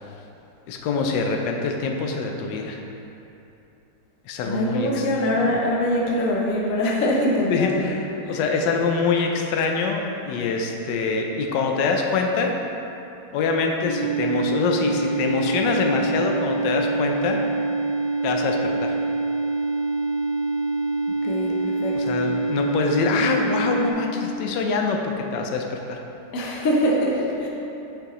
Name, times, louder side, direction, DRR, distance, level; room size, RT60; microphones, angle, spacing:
voice 1, 0.7-2.8 4.3-5.0 5.4-5.5 7.5-12.6 13.3-17.4 18.2-18.9 21.9-26.0, left 4 dB, 85° left, 2 dB, 1.3 m, -24 dB
voice 2, 4.4-7.9 8.3-8.4 21.2-22.2 26.3-27.5, left 1 dB, 55° left, -3 dB, 1.1 m, -23 dB
sound 1, 13.8-23.9, right 3 dB, 40° right, 1.1 m, -25 dB
6.7 x 5.8 x 3.0 m, 2.9 s
omnidirectional pair, 1.9 m